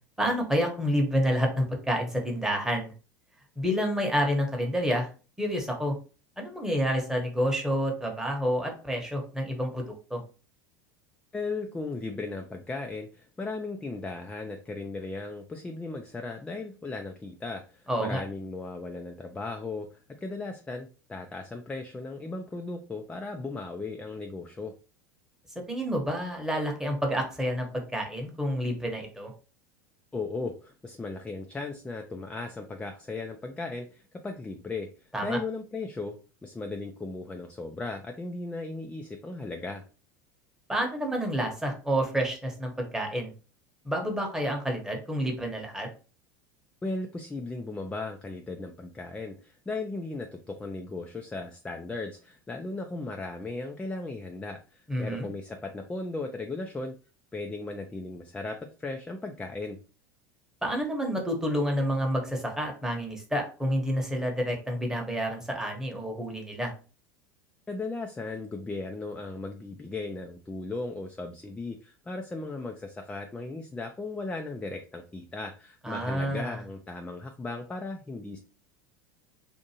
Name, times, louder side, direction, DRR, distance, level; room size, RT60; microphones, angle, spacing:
voice 1, 0.2-2.9 3.6-5.1 5.4-5.9 6.4-10.2 17.9-18.2 25.7-29.3 35.1-35.4 40.7-43.3 43.8-45.9 54.9-55.3 60.6-66.7 75.8-76.6, equal, 5° right, 1 dB, 1.0 m, -29 dB
voice 2, 11.3-24.7 30.1-36.2 36.4-39.8 46.8-56.9 57.3-59.8 67.7-78.4, left 3 dB, 10° left, 4 dB, 0.4 m, -36 dB
2.6 x 2.5 x 2.8 m, 0.35 s
hypercardioid pair, 90°, 11 cm